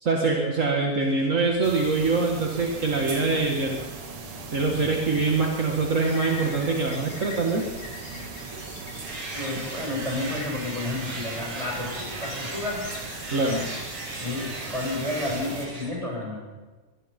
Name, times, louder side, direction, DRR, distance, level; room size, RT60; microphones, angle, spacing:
voice 1, 0.0-3.8 4.5-7.7 13.3-13.7, right 3 dB, 30° right, 0 dB, 1.7 m, -24 dB
sound 1, 1.0-15.9, left 3 dB, 75° left, 5.6 m, -44 dB
sound 2, 1.6-15.7, right 4 dB, 50° right, 2.9 m, -39 dB
sound 3, 9.0-15.9, right 2 dB, 85° right, 6.8 m, -38 dB
voice 2, 9.3-12.9 14.2-16.4, left 2 dB, 10° right, -1 dB, 7.0 m, -31 dB
24.5 x 21.0 x 5.5 m, 1.3 s
omnidirectional pair, 3.5 m